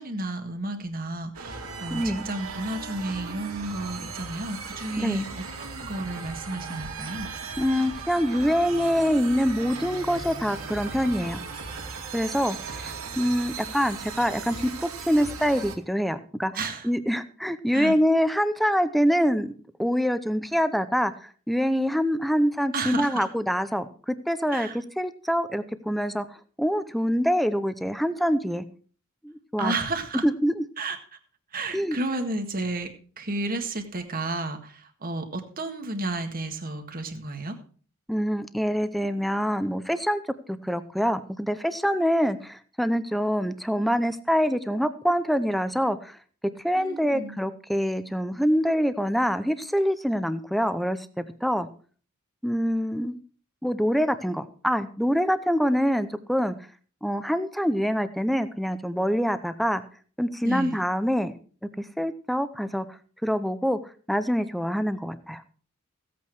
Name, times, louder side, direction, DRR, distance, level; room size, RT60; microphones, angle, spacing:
voice 1, 0.0-5.3 5.6-7.3 12.2-12.4 16.5-16.9 17.7-18.0 22.7-23.3 24.5-24.8 29.6-30.2 30.8-31.0 31.5-32.9 33.2-37.6 46.8-47.4 60.4-60.8, right 2 dB, 45° right, 6 dB, 1.7 m, -32 dB
sound 1, 1.3-15.8, right 4 dB, 75° right, 2.4 m, -37 dB
voice 2, 1.9-2.3 5.0-5.3 7.6-11.4 12.1-16.5 16.8-19.5 19.8-26.3 26.6-28.6 29.2-29.7 30.2-30.6 31.7-32.0 38.1-40.2 40.5-46.2 46.6-51.7 52.4-53.2 53.6-56.5 57.0-59.8 60.2-61.3 61.8-63.8 64.1-65.4, equal, ahead, 12 dB, 0.7 m, -25 dB
15.5 x 8.5 x 4.7 m, 0.42 s
head